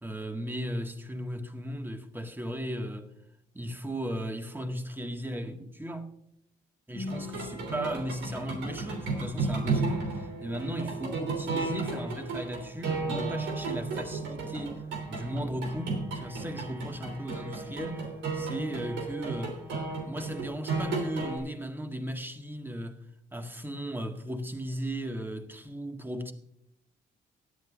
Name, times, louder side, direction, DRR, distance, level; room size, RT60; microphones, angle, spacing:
voice 1, 0.0-3.1 3.5-6.1 6.9-14.8 15.1-19.6 20.0-23.0 23.3-26.3, right 1 dB, 10° right, 1.8 m, -36 dB
sound 1, 6.9-21.4, right 3 dB, 85° right, 3.2 m, -34 dB
17.5 x 11.0 x 2.5 m
supercardioid pair, 70°, 19 cm